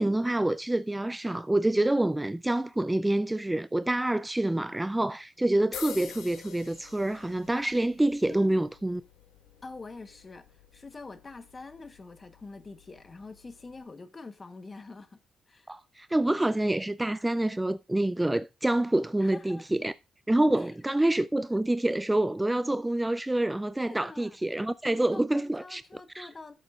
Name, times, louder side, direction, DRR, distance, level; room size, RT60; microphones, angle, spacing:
voice 1, 0.0-9.0 15.7-19.9 20.3-25.8 26.1-26.3, right 1 dB, 10° right, 0.3 m, -27 dB
sound 1, 5.7-13.8, left 8 dB, 90° left, 1.5 m, -48 dB
voice 2, 8.3-8.6 9.6-10.5 10.7-15.2 15.5-15.7 19.2-19.6 20.5-20.7 23.9-24.4 25.1-26.5, left 3 dB, 30° left, 1.0 m, -45 dB
12.5 x 7.3 x 2.4 m
cardioid pair, 90°, 0 cm